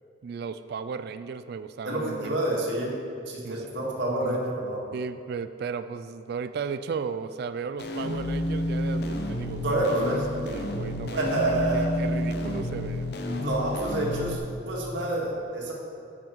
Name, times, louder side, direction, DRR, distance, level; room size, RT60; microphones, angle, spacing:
voice 1, 0.2-2.4 3.4-3.6 4.2-4.4 4.9-13.2, right 5 dB, 55° right, 11 dB, 0.3 m, -35 dB
voice 2, 1.8-3.0 3.3-4.8 9.6-10.2 11.2-11.9 13.4-14.4 14.7-15.7, right 1 dB, 75° right, -3 dB, 1.9 m, -28 dB
sound 1, 7.8-14.4, left 1 dB, 60° left, 0.7 m, -30 dB
12.5 x 5.6 x 4.6 m, 2.5 s
head